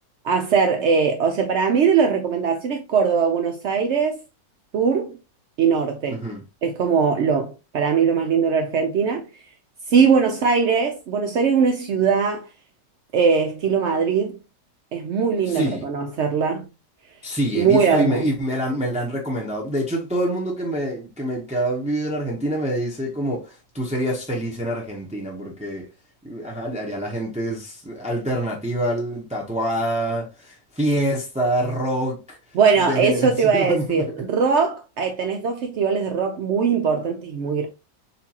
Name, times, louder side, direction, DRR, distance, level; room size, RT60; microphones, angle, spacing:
voice 1, 0.2-4.2 4.7-5.2 5.6-6.2 6.6-9.3 9.9-12.4 13.1-14.4 14.9-16.7 17.5-18.2 32.5-37.6, right 6 dB, 85° right, 0.6 m, -20 dB
voice 2, 6.1-6.4 15.4-15.9 17.2-25.9 26.2-32.4 32.8-34.0, right 1 dB, 10° right, 0.4 m, -26 dB
6.7 x 2.5 x 2.8 m
omnidirectional pair, 1.9 m